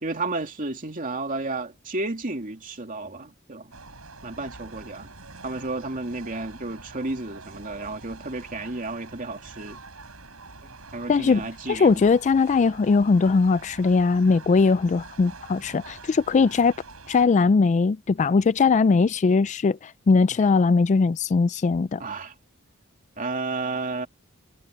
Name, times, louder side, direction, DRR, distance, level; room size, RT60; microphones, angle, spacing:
voice 1, 0.0-3.7 4.2-5.1 5.4-9.8 10.6-12.0 22.0-22.3 23.2-24.1, right 2 dB, 40° right, 2.9 m, -32 dB
sound 1, 3.7-17.3, right 3 dB, 85° right, 6.6 m, -45 dB
voice 2, 11.1-16.7 17.1-22.0, left 4 dB, 35° left, 0.3 m, -20 dB
head